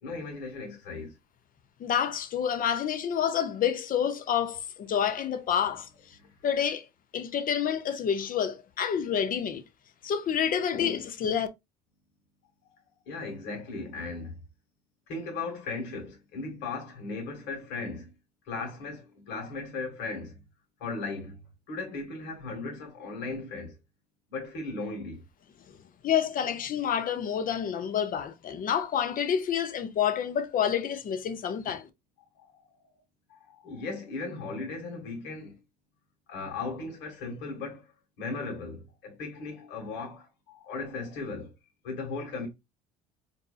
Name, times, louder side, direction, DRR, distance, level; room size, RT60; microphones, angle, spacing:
voice 1, 0.0-1.1 6.2-6.3 13.1-14.4 15.1-18.1 18.4-20.4 20.8-21.4 21.7-23.8 24.3-25.2 32.3-32.6 33.3-35.6 36.3-37.9 38.2-41.5 41.8-42.5, left 3 dB, 60° left, 1.5 m, -37 dB
voice 2, 1.8-6.2 6.4-6.9 7.1-9.6 10.0-11.5 25.7-25.8 26.0-31.9, left 8 dB, 45° left, 0.7 m, -28 dB
4.4 x 2.7 x 2.4 m
hypercardioid pair, 70°, 21 cm